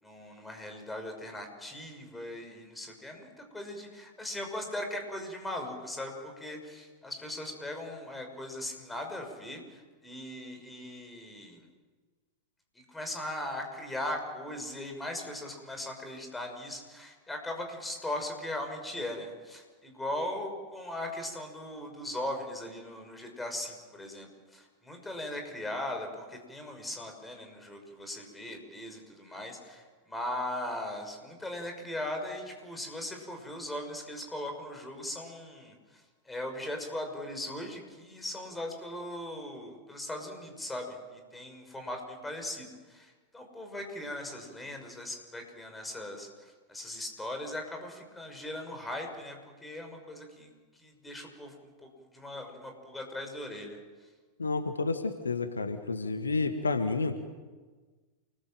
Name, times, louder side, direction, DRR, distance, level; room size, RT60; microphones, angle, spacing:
voice 1, 0.0-11.6 12.7-53.8, left 1 dB, 10° left, 4 dB, 6.0 m, -39 dB
voice 2, 54.4-57.2, left 3 dB, 75° left, 9 dB, 1.6 m, -30 dB
28.5 x 21.0 x 7.7 m, 1.4 s
figure-of-eight pair, 90°, 0 cm